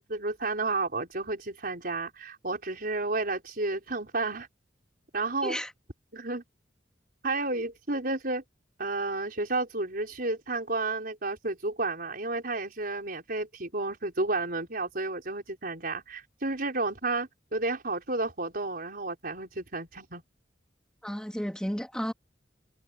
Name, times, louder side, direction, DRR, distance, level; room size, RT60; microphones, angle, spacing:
voice 1, 0.0-4.5 5.1-5.6 6.1-6.4 7.2-8.4 8.8-20.2, right 3 dB, 55° right, 5.2 m, -31 dB
voice 2, 21.0-22.1, equal, 5° left, 3.0 m, -32 dB
head